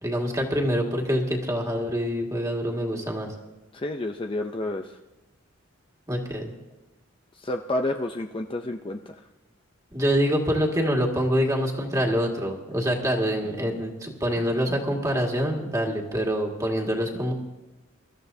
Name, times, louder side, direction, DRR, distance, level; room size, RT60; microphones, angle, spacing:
voice 1, 0.0-3.3 6.1-6.5 9.9-17.3, equal, 15° right, 0 dB, 1.9 m, -25 dB
voice 2, 3.7-5.0 7.3-9.2, left 1 dB, 25° left, 4 dB, 0.5 m, -30 dB
24.5 x 13.5 x 2.7 m, 1.1 s
head